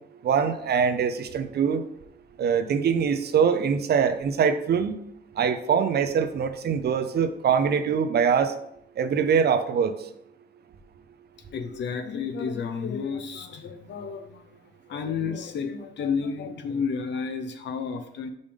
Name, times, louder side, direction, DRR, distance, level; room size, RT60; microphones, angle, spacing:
voice 1, 0.2-1.8 2.4-5.0 5.4-8.5 9.0-9.9, right 6 dB, 55° right, 9 dB, 0.6 m, -23 dB
voice 2, 11.5-14.6 14.9-18.3, left 5 dB, 65° left, 8 dB, 0.8 m, -31 dB
5.3 x 5.1 x 3.5 m, 0.76 s
cardioid pair, 90°, 20 cm